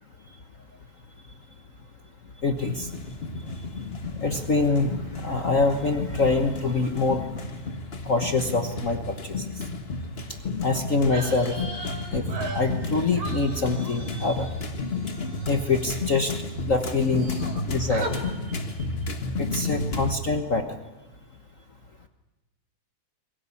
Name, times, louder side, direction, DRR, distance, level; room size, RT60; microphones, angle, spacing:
voice 1, 2.4-2.9 4.2-7.3 8.0-9.5 10.6-11.6 12.1-14.5 15.5-16.3 16.7-17.3 17.7-18.2 19.4-20.8, left 3 dB, 65° left, 6 dB, 0.7 m, -25 dB
sound 1, 2.6-20.2, left 2 dB, 35° left, 1.0 m, -32 dB
sound 2, 11.0-16.6 16.9-17.6 17.9-18.2, right 2 dB, 70° right, 4.8 m, -39 dB
22.5 x 18.5 x 9.8 m, 1.1 s
omnidirectional pair, 3.4 m